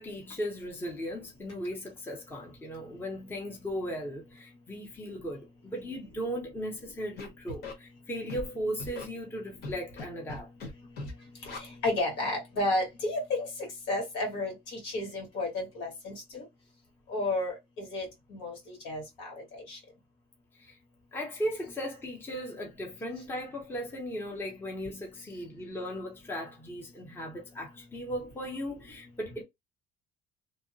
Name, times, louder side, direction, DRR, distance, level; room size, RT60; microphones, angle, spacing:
voice 1, 0.0-10.5 20.6-20.8 21.1-29.4, equal, 10° left, 0.6 m, -37 dB
Scratching (performance technique), 7.2-7.7 8.3-8.5 8.8-9.0 9.6-10.0 10.3-10.7 11.0-11.1 11.4-11.6, left 2 dB, 60° left, 1.1 m, -39 dB
voice 2, 11.5-16.4 17.1-19.8, left 2 dB, 85° left, 1.6 m, -32 dB
2.8 x 2.1 x 2.6 m
cardioid pair, 175°, 18 cm